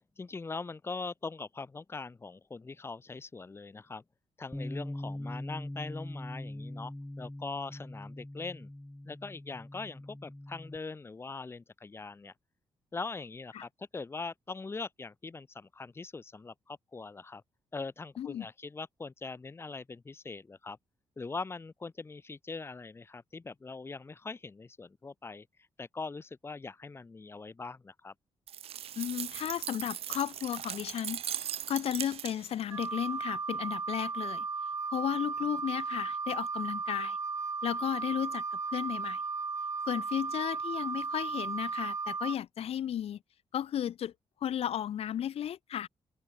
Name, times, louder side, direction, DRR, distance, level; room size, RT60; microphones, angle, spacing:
voice 1, 0.0-4.0 4.4-8.7 9.0-12.3 12.9-17.4 17.7-20.8 21.2-25.5 25.8-28.1, left 4 dB, 25° left, 2.7 m, -42 dB
Bass guitar, 4.5-10.8, left 1 dB, 5° left, 6.5 m, -42 dB
voice 2, 18.2-18.5 29.0-31.2 31.7-34.5 34.9-37.2 37.6-39.2 39.9-43.2 43.5-44.1 44.4-45.9, left 10 dB, 75° left, 6.1 m, -34 dB
sound 1, 28.5-32.6, right 10 dB, 75° right, 1.6 m, -39 dB
Wind instrument woodwind instrument, 32.7-42.4, right 4 dB, 30° right, 5.0 m, -35 dB
wide cardioid pair, 135°, 10 cm